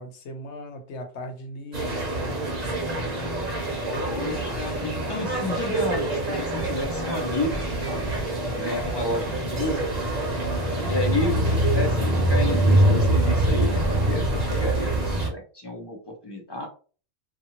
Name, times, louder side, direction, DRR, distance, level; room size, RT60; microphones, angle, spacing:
voice 1, 0.0-2.1 3.7-4.1, left 1 dB, 85° left, 6 dB, 1.0 m, -38 dB
sound 1, 1.7-15.3, right 1 dB, 40° right, 0.9 m, -25 dB
voice 2, 4.1-7.6 8.6-9.8 10.8-16.7, left 2 dB, 35° left, 2 dB, 0.4 m, -31 dB
2.7 x 2.3 x 2.8 m, 0.39 s
omnidirectional pair, 1.1 m